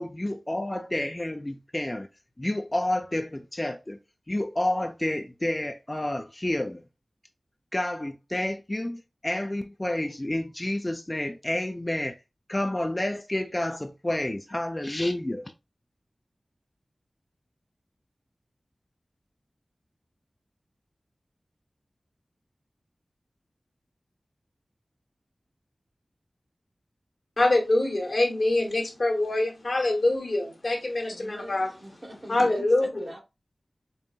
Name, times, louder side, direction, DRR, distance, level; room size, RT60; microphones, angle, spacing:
voice 1, 0.0-2.1 2.4-4.0 4.3-6.8 7.7-12.2 12.5-15.4, left 1 dB, 25° left, 0.5 m, -29 dB
voice 2, 27.4-31.7 32.3-32.9, left 2 dB, 65° left, 1.2 m, -24 dB
voice 3, 31.1-33.2, right 1 dB, 55° right, 1.4 m, -44 dB
5.4 x 2.5 x 2.4 m
wide cardioid pair, 50°, 0 cm